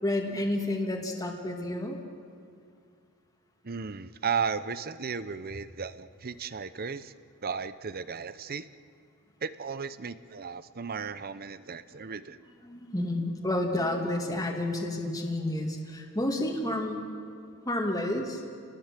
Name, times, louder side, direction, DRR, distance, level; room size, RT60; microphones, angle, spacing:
voice 1, 0.0-2.0 12.6-17.0 17.6-18.4, left 1 dB, 15° left, 1 dB, 2.4 m, -30 dB
voice 2, 3.6-7.1 7.4-8.7 9.4-12.4, right 6 dB, 45° right, 14 dB, 0.8 m, -35 dB
29.0 x 19.5 x 7.5 m, 2.4 s
head